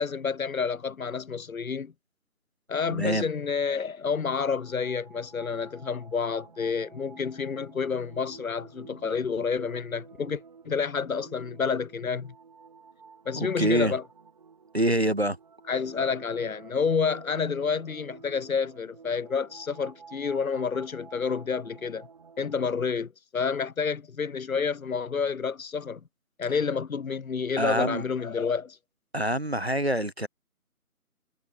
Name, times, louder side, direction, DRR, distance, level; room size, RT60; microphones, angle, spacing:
voice 1, 0.0-1.9 2.7-12.3 13.3-14.0 15.7-22.1 22.4-26.0 26.4-28.8, left 5 dB, 65° left, 0.9 m, -29 dB
voice 2, 2.9-3.3 13.4-13.9 14.7-15.4 27.6-28.0 29.1-30.3, right 1 dB, 45° right, 0.4 m, -25 dB
sound 1, 4.6-22.9, right 5 dB, 25° right, 2.8 m, -51 dB
figure-of-eight pair, 170°, 45 cm